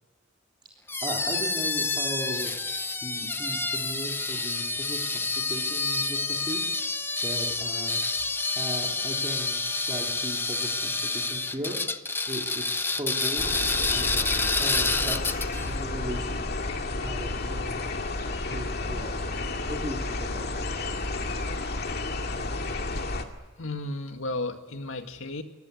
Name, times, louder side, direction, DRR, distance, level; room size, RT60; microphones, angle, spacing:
sound 1, 0.9-15.7, left 3 dB, 10° left, 0.7 m, -28 dB
voice 1, 1.0-2.5 3.0-11.8 12.3-13.5 13.9-16.5 16.8-17.9 18.5-20.7, equal, 25° right, -2 dB, 3.4 m, -37 dB
Camino a Futaleufú (abeja), 13.4-23.3, left 2 dB, 55° left, 2.1 m, -31 dB
voice 2, 23.6-25.4, left 2 dB, 85° left, 6 dB, 2.1 m, -34 dB
25.0 x 19.0 x 9.7 m, 1.3 s
head